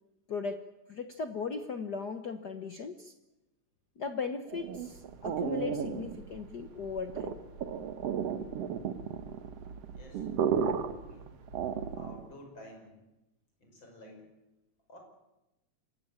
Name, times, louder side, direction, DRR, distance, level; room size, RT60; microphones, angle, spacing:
voice 1, 0.3-3.1 4.0-7.4, left 5 dB, 70° left, 8 dB, 0.9 m, -37 dB
sound 1, 4.5-12.3, right 7 dB, 60° right, 2.1 m, -34 dB
voice 2, 9.9-10.3 11.0-11.4 12.0-13.0 13.6-14.3 14.9-15.0, left 1 dB, 40° left, 2 dB, 6.5 m, -51 dB
27.5 x 16.5 x 8.8 m, 0.98 s
omnidirectional pair, 3.4 m